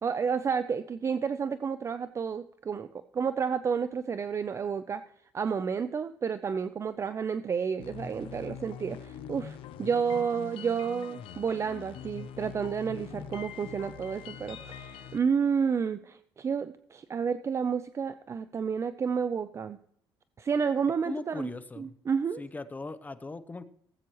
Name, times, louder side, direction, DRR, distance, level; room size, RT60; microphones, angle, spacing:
voice 1, 0.0-2.9 3.1-5.0 5.3-19.8 20.4-22.4, right 6 dB, 30° right, 11 dB, 0.5 m, -30 dB
sound 1, 7.8-15.2, left 8 dB, 80° left, 0.8 m, -43 dB
voice 2, 21.0-21.9 22.4-23.6, left 3 dB, 20° left, 13 dB, 0.7 m, -39 dB
18.0 x 8.3 x 3.1 m, 0.68 s
cardioid pair, 120°, 9 cm